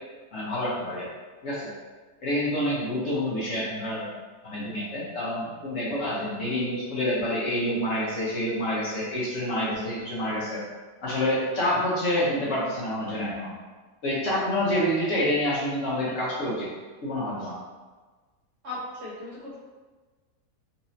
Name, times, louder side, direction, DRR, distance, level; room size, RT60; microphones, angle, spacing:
voice 1, 0.3-1.1 1.4-1.7 2.2-4.1 4.4-10.6 11.0-13.5 14.0-16.7 17.0-17.6, left 1 dB, 60° left, -8 dB, 1.3 m, -27 dB
voice 2, 18.6-19.6, left 2 dB, 50° right, -8 dB, 1.1 m, -37 dB
4.1 x 2.6 x 2.7 m, 1.3 s
omnidirectional pair, 1.6 m